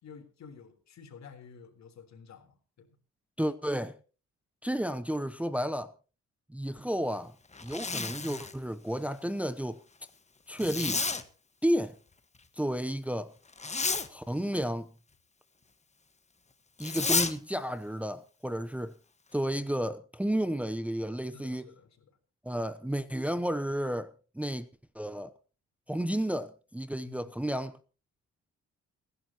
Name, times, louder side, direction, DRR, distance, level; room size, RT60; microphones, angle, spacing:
voice 1, 0.0-2.9 21.3-22.2 27.0-27.3, left 6 dB, 65° left, 3.8 m, -51 dB
voice 2, 3.4-4.0 4.6-5.9 6.5-7.3 7.6-9.8 10.5-11.1 11.6-12.0 12.5-13.3 14.1-14.9 16.8-19.0 19.3-21.7 22.4-24.7 24.9-25.3 25.9-27.8, equal, 5° right, 0.8 m, -32 dB
Zipper (clothing), 7.5-8.6 10.6-11.2 13.5-14.1 16.8-17.3, left 4 dB, 20° left, 1.5 m, -31 dB
29.0 x 11.0 x 3.0 m
cardioid pair, 90°, 30 cm